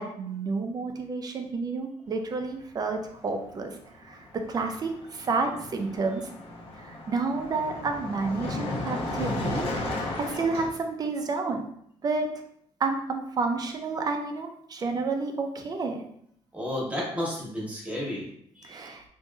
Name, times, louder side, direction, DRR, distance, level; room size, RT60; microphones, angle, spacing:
voice 1, 0.0-3.8 4.0-6.3 6.8-9.6 10.2-11.6 12.0-12.3 12.8-16.0 18.6-19.0, right 4 dB, 35° right, 4 dB, 0.4 m, -30 dB
Car passing by, 3.2-3.4 3.7-10.7, left 2 dB, 65° left, 0.7 m, -35 dB
voice 2, 16.5-18.3 18.6-18.9, left 1 dB, 15° right, -4 dB, 1.0 m, -32 dB
3.0 x 2.6 x 2.2 m, 0.70 s
cardioid pair, 115°, 11 cm